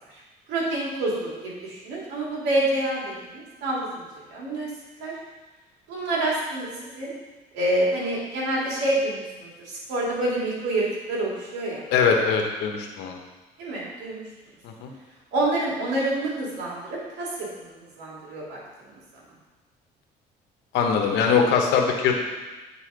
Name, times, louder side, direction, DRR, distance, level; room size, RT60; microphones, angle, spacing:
voice 1, 0.5-4.7 5.0-5.1 5.9-7.1 7.5-11.8 13.6-14.2 15.3-18.6 18.9-19.0, right 1 dB, 90° right, -4 dB, 2.7 m, -27 dB
voice 2, 11.9-13.2 14.6-14.9 20.7-22.2, left 6 dB, 85° left, 2 dB, 1.2 m, -22 dB
8.7 x 4.3 x 5.0 m, 1.2 s
cardioid pair, 110°, 17 cm